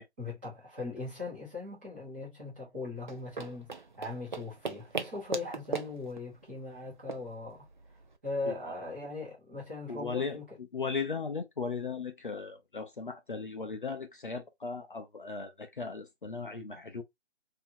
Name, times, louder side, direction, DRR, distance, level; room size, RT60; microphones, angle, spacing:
voice 1, 0.2-7.7 8.2-10.6, left 3 dB, 10° right, 1.5 m, -39 dB
sound 1, 3.0-8.2, right 4 dB, 45° right, 0.5 m, -40 dB
voice 2, 9.9-17.0, left 5 dB, 50° left, 0.6 m, -37 dB
4.0 x 2.9 x 2.7 m
figure-of-eight pair, 165°, 33 cm